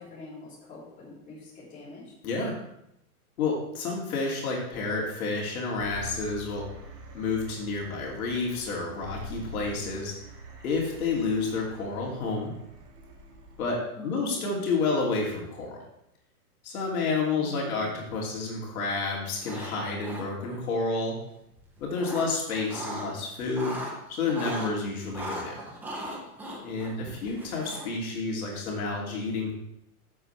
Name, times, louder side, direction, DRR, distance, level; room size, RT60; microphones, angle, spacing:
voice 1, 0.0-2.1 13.9-14.3 17.4-17.9 24.6-25.0 27.0-27.4, left 2 dB, 15° left, -7 dB, 3.5 m, -44 dB
voice 2, 2.2-2.6 3.4-6.7 7.1-10.2 10.6-12.5 13.6-15.8 16.6-21.2 21.8-23.8 24.1-25.6 26.6-29.5, left 3 dB, 65° left, -2 dB, 2.9 m, -30 dB
sound 1, 5.8-13.7, right 2 dB, 85° right, 2.1 m, -45 dB
sound 2, 19.4-19.7 20.0-20.6 21.6-23.1 23.4-24.7 25.1-28.1, right 1 dB, 5° right, 0.6 m, -38 dB
12.0 x 7.3 x 3.4 m, 0.80 s
supercardioid pair, 160°, 46 cm